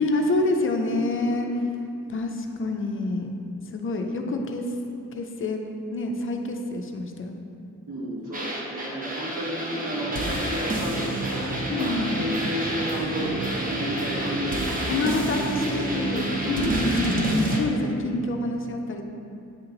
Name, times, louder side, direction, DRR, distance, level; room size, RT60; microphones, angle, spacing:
voice 1, 0.0-1.5 2.1-3.4 3.7-4.7 5.1-5.6 5.9-7.5 11.7-12.2 14.9-19.1, left 2 dB, 45° left, 3 dB, 0.5 m, -27 dB
voice 2, 0.9-1.4 7.9-16.2 16.6-16.9, equal, 80° right, -5 dB, 1.5 m, -33 dB
sound 1, 8.3-17.6, right 1 dB, 30° right, 0.8 m, -28 dB
8.7 x 2.9 x 3.8 m, 2.6 s
wide cardioid pair, 130°, 30 cm